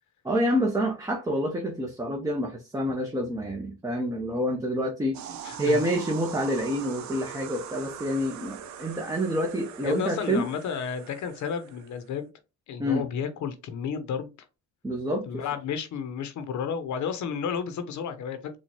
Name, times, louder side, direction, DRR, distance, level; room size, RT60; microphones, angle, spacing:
voice 1, 0.2-10.5 12.8-13.1 14.8-15.4, equal, 10° right, 0.8 m, -28 dB
sound 1, 5.1-12.1, right 8 dB, 65° right, 0.6 m, -42 dB
voice 2, 5.4-5.8 9.8-12.3 12.7-14.3 15.3-18.6, left 7 dB, 70° left, 0.8 m, -32 dB
4.3 x 2.4 x 3.0 m
cardioid pair, 90°, 30 cm